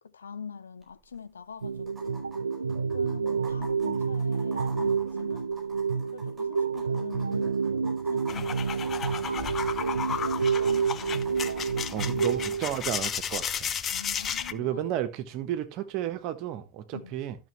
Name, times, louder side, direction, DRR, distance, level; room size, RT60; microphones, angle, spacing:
voice 1, 0.0-2.3 2.7-5.4 5.9-9.4 9.7-11.5 13.9-14.9 16.9-17.1, left 6 dB, 70° left, 0.7 m, -44 dB
sound 1, 0.8-0.9 1.1-1.2 1.9-12.2 13.8-13.9, right 2 dB, 10° right, 4.6 m, -47 dB
sound 2, 1.6-12.6, right 5 dB, 75° right, 0.4 m, -29 dB
sound 3, 8.3-14.5, left 8 dB, 25° left, 0.6 m, -33 dB
voice 2, 11.9-13.7 14.5-17.4, right 11 dB, 40° right, 1.2 m, -32 dB
12.5 x 6.2 x 3.1 m
figure-of-eight pair, 90°, 0 cm